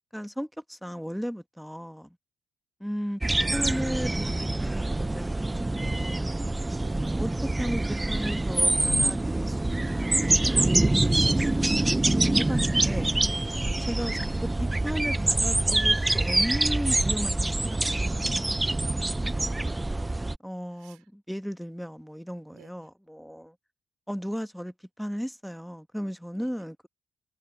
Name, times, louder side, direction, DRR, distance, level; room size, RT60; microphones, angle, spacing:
voice 1, 0.0-2.2 2.8-3.2 3.5-6.4 7.1-18.7 20.4-23.5 24.1-26.9, equal, ahead, 1.4 m, -36 dB
sound 1, 3.2-20.4, right 2 dB, 20° right, 0.5 m, -25 dB
voice 2, 6.8-7.2 13.6-13.9 19.4-20.1 20.7-21.1 22.5-22.9 26.3-26.5, right 18 dB, 90° right, 4.7 m, -55 dB
supercardioid pair, 50°, 0 cm